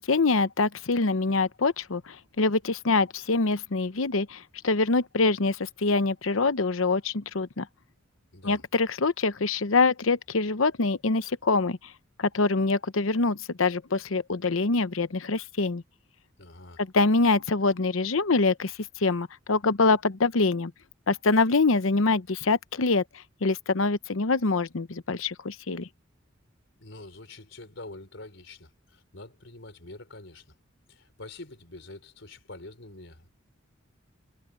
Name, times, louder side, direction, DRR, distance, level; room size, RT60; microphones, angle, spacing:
voice 1, 0.0-7.7 8.4-11.8 12.2-15.8 16.9-20.7 21.1-23.0 23.4-25.9, left 3 dB, 90° left, 0.9 m, -25 dB
voice 2, 8.3-8.7 16.4-16.8 26.8-30.5 30.9-33.3, left 2 dB, 65° left, 5.0 m, -45 dB
head